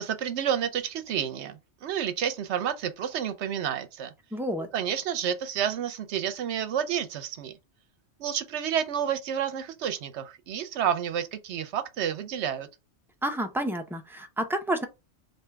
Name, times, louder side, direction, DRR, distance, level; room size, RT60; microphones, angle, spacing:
voice 1, 0.0-4.1 4.7-7.5 8.2-12.7, right 9 dB, 70° right, 0.9 m, -30 dB
voice 2, 4.3-4.7 13.2-14.8, right 1 dB, 5° right, 0.4 m, -29 dB
3.5 x 2.7 x 4.4 m
omnidirectional pair, 1.2 m